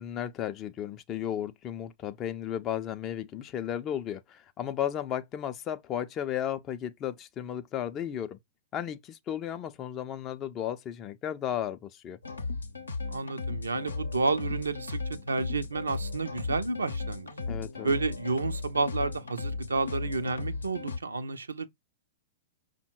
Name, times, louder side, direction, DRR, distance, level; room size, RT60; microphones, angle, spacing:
voice 1, 0.0-8.4 8.7-12.2 17.5-17.9, left 10 dB, 30° left, 0.4 m, -34 dB
sound 1, 12.2-21.0, left 3 dB, 80° left, 0.7 m, -36 dB
voice 2, 13.0-17.3 17.8-21.7, right 3 dB, 75° right, 0.5 m, -31 dB
5.5 x 2.1 x 4.4 m
figure-of-eight pair, 105°, 0 cm